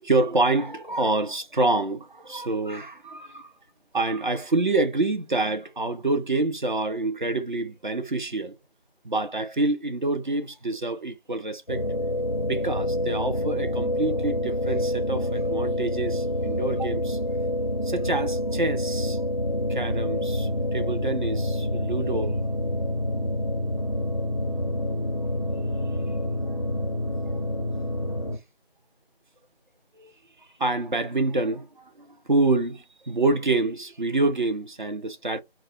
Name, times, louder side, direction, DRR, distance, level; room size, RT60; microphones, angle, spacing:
voice 1, 0.0-3.5 3.9-8.6 9.0-11.8 12.4-17.2 17.8-19.2 19.7-22.3 26.5-26.6 30.0-30.1 30.6-35.4, right 2 dB, 50° right, 0.5 m, -27 dB
sound 1, 11.7-28.4, left 1 dB, 40° left, 0.4 m, -27 dB
2.3 x 2.1 x 3.5 m
figure-of-eight pair, 170°, 31 cm